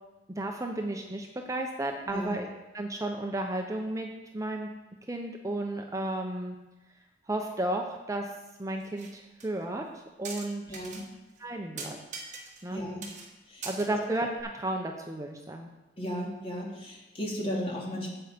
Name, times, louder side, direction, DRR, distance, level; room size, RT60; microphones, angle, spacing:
voice 1, 0.4-2.5 2.7-4.7 5.1-6.6 7.3-8.3 8.6-10.8 11.4-12.0 12.6-12.8 13.6-15.7, right 1 dB, 20° right, 3 dB, 0.7 m, -33 dB
voice 2, 2.1-2.4 10.7-11.0 12.7-13.1 13.5-13.7 16.0-18.1, equal, 35° left, -3 dB, 2.4 m, -35 dB
sound 1, 8.8-9.1 9.4-9.5 10.2-11.0 11.4-11.5 11.8-12.8 13.0-13.3 13.6-14.4, right 4 dB, 45° right, 1.6 m, -41 dB
8.8 x 8.0 x 5.1 m, 1.1 s
head